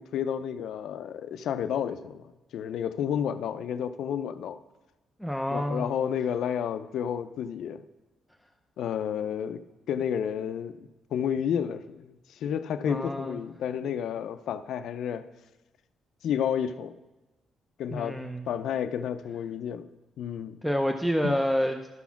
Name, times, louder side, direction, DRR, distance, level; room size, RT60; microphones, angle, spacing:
voice 1, 0.0-2.3 2.5-4.6 5.5-7.8 8.8-15.3 16.2-17.0 17.8-18.2 18.5-19.9 20.2-20.6 21.2-21.4, left 8 dB, 75° left, 11 dB, 0.4 m, -31 dB
voice 2, 5.2-5.9 12.8-13.4 17.9-18.4 20.6-21.9, equal, ahead, 4 dB, 0.5 m, -28 dB
12.0 x 4.1 x 5.8 m, 1.1 s
cardioid pair, 90°, 0 cm